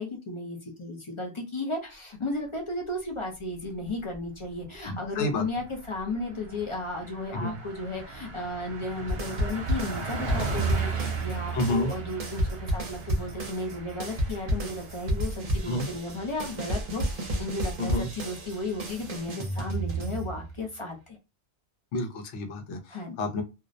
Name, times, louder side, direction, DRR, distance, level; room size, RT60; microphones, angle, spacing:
voice 1, 0.0-21.2 22.9-23.2, left 2 dB, 40° left, 2 dB, 0.4 m, -34 dB
Car passing by, 3.6-4.3 4.6-4.8 5.0-19.3, right 5 dB, 65° right, 0.9 m, -37 dB
voice 2, 4.8-5.4 7.3-7.6 11.5-11.9 15.7-15.9 17.8-18.1 21.9-23.4, left 1 dB, 85° left, 5 dB, 0.9 m, -30 dB
sound 1, 9.1-11.3 11.6-20.6, right 1 dB, 45° right, 0.6 m, -31 dB
2.5 x 2.0 x 2.4 m, 0.27 s
omnidirectional pair, 1.2 m